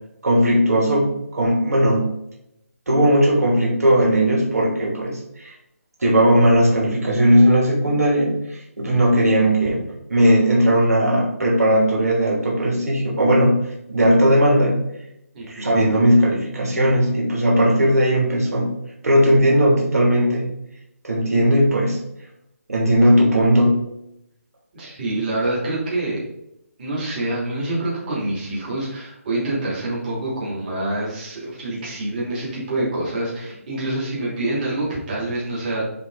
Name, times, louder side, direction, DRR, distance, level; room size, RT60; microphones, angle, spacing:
voice 1, 0.2-2.1 2.9-5.5 6.0-9.8 10.1-13.5 13.9-14.8 15.5-18.7 19.0-20.5 21.0-22.0 22.7-23.8, equal, 80° right, -3 dB, 2.9 m, -17 dB
voice 2, 15.3-15.7 24.7-26.2 26.8-35.8, right 2 dB, 35° right, -6 dB, 2.8 m, -26 dB
9.8 x 3.6 x 3.9 m, 0.83 s
hypercardioid pair, 160°, 8 cm